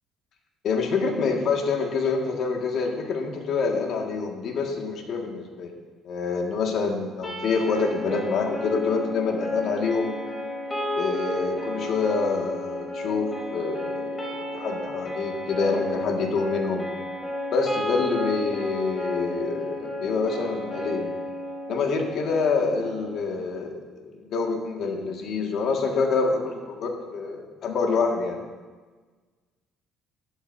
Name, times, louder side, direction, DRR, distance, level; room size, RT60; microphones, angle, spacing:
voice 1, 0.6-5.7 6.0-10.1 10.9-16.9 17.5-21.1 21.7-28.4, left 4 dB, 60° left, 1 dB, 2.1 m, -27 dB
sound 1, 7.2-23.3, left 1 dB, 20° left, 3.3 m, -32 dB
13.5 x 12.5 x 2.8 m, 1.4 s
cardioid pair, 95°, 0 cm